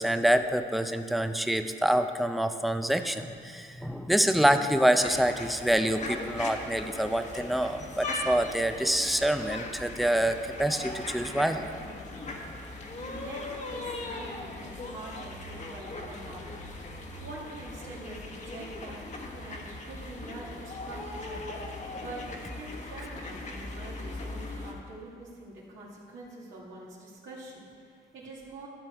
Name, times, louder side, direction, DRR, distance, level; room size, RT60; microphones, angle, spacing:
voice 1, 0.0-11.7, right 1 dB, ahead, 8 dB, 0.5 m, -26 dB
sound 1, 5.0-24.7, left 2 dB, 35° left, 1.3 m, -39 dB
voice 2, 12.9-16.7 17.2-21.5 21.9-22.3 22.6-28.7, right 2 dB, 75° right, -5 dB, 2.3 m, -45 dB
12.0 x 6.9 x 4.6 m, 2.4 s
cardioid pair, 90°, 20 cm